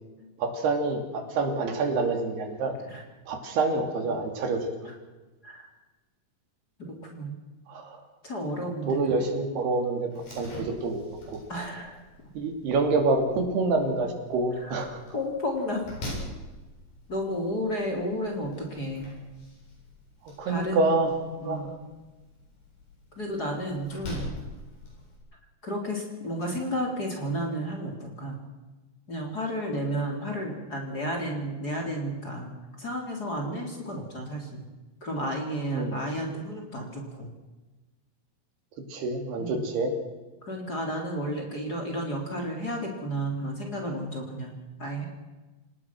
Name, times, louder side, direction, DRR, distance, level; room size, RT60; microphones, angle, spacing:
voice 1, 0.4-2.7 3.3-4.7 7.7-8.0 8.6-10.1 10.4-11.0 11.3-11.4 12.3-15.0 20.4-21.1 21.4-21.7 35.7-36.0 38.9-39.9, right 3 dB, 80° right, 4 dB, 4.8 m, -27 dB
voice 2, 6.8-7.4 8.2-9.2 11.5-12.0 14.6-14.9 15.1-15.9 17.1-19.1 20.5-20.9 21.4-21.7 23.2-24.3 25.6-28.4 29.1-32.5 32.8-34.6 35.0-37.3 39.4-39.7 40.4-45.1, equal, 25° left, 1 dB, 3.9 m, -32 dB
Slam, 10.1-25.2, left 1 dB, 75° left, 10.0 m, -44 dB
28.0 x 18.5 x 6.1 m, 1.2 s
omnidirectional pair, 4.6 m